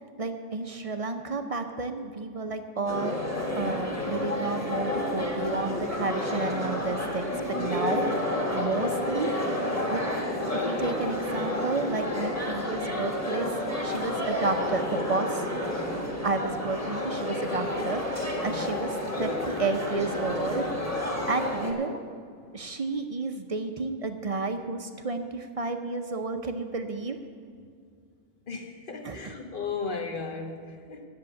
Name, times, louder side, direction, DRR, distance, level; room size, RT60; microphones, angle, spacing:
voice 1, 0.2-8.1 8.5-9.3 9.9-10.0 10.4-13.6 13.8-15.4 16.2-20.6 21.3-22.0 22.5-27.2 29.0-29.3, right 3 dB, 50° right, 7 dB, 0.4 m, -31 dB
sound 1, 2.9-21.7, left 1 dB, 10° left, 1.9 m, -30 dB
voice 2, 8.6-8.9 25.9-26.0 28.5-31.0, left 4 dB, 45° left, 5 dB, 1.1 m, -36 dB
10.5 x 7.1 x 8.5 m, 2.2 s
omnidirectional pair, 1.4 m